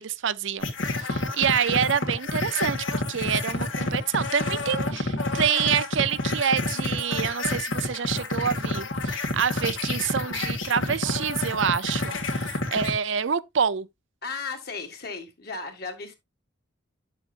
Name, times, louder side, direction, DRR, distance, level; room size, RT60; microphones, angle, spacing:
voice 1, 0.0-13.9, right 7 dB, 70° right, 0.5 m, -27 dB
sound 1, 0.6-12.9, left 2 dB, 75° left, 1.9 m, -29 dB
voice 2, 14.2-16.2, left 4 dB, 50° left, 2.1 m, -35 dB
10.0 x 7.2 x 2.5 m
head